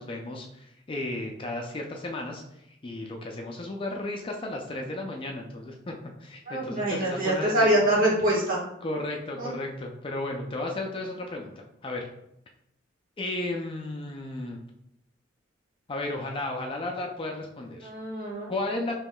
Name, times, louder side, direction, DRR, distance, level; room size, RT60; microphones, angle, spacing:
voice 1, 0.0-2.4 2.7-5.9 6.2-7.7 8.8-12.1 13.2-14.6 15.9-17.9 18.5-19.0, left 2 dB, 25° left, 2 dB, 0.3 m, -34 dB
voice 2, 6.5-8.6 9.4-9.5 17.8-18.5, right 1 dB, 45° right, -5 dB, 1.4 m, -24 dB
5.3 x 3.0 x 2.2 m, 0.79 s
head